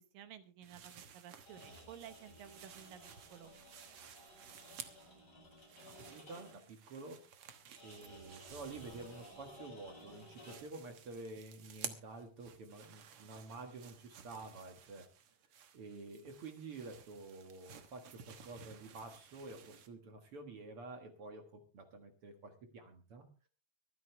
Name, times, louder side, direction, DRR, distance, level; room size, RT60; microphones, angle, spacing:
voice 1, 0.1-3.5, right 9 dB, 70° right, 11 dB, 2.5 m, -54 dB
sound 1, 0.6-5.2 5.5-9.7 10.0-19.9, right 8 dB, 85° right, 1.2 m, -54 dB
sound 2, 1.4-6.7 7.8-10.8, left 1 dB, 25° left, 7.4 m, -56 dB
voice 2, 6.1-7.2 7.8-15.1 15.7-23.3, right 3 dB, 55° right, 6 dB, 1.7 m, -50 dB
25.0 x 9.5 x 3.3 m, 0.35 s
omnidirectional pair, 4.4 m